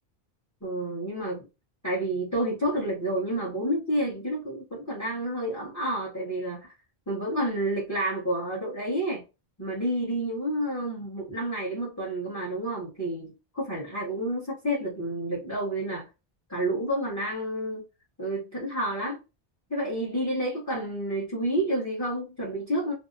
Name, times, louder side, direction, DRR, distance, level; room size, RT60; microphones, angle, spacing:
voice 1, 0.6-1.5 1.8-6.7 7.1-9.2 9.6-16.1 16.5-17.8 18.2-19.2 19.7-22.9, right 1 dB, 20° left, 0.8 m, -29 dB
2.7 x 2.0 x 2.4 m
omnidirectional pair, 1.1 m